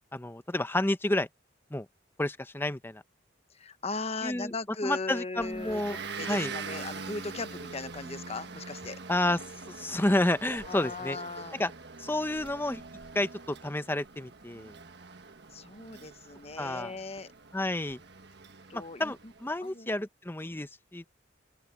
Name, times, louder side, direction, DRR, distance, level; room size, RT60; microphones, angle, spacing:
voice 1, 0.1-1.3 1.7-1.9 2.2-3.0 4.2-4.5 4.8-6.0 6.3-6.5 9.1-9.4 9.7-11.2 11.6-11.7 12.0-12.8 13.1-14.7 16.6-16.9 17.5-18.0 18.7-21.1, left 1 dB, 10° left, 0.8 m, -30 dB
voice 2, 3.5-9.0 10.6-11.6 15.5-17.3 18.7-19.3 19.6-20.0, left 3 dB, 35° left, 1.0 m, -38 dB
Motor vehicle (road) / Engine, 5.4-19.6, right 4 dB, 65° right, 1.5 m, -44 dB
open air
head